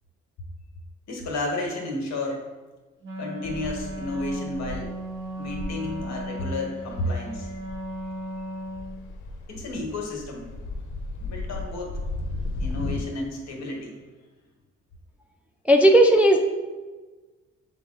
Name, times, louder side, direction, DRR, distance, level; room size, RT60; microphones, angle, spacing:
voice 1, 1.1-2.4 3.1-5.0 5.4-7.5 9.5-10.5 11.2-11.9 12.6-14.0, left 2 dB, 60° left, 0 dB, 1.3 m, -32 dB
Wind instrument woodwind instrument, 3.0-9.1, right 1 dB, 40° right, 0.9 m, -36 dB
sound 1, 3.4-13.0, left 2 dB, 90° left, 0.6 m, -36 dB
voice 2, 15.6-16.4, right 1 dB, 5° right, 2 dB, 0.3 m, -15 dB
6.6 x 2.3 x 3.6 m, 1.3 s
cardioid pair, 90°, 30 cm